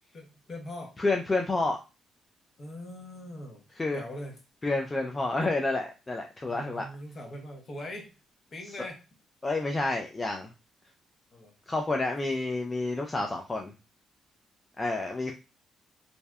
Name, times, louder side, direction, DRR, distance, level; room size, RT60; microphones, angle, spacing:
voice 1, 0.1-0.9 2.6-3.6 3.9-4.3 5.4-5.5 6.4-8.1 8.5-9.0 11.3-11.5 12.2-12.3, left 1 dB, 45° left, 3 dB, 0.7 m, -42 dB
voice 2, 1.0-1.8 3.8-4.0 4.6-6.9 9.4-10.5 11.7-13.7 14.8-15.3, left 2 dB, 20° left, 2 dB, 0.3 m, -29 dB
2.6 x 2.1 x 2.3 m, 0.29 s
cardioid pair, 90°, 0 cm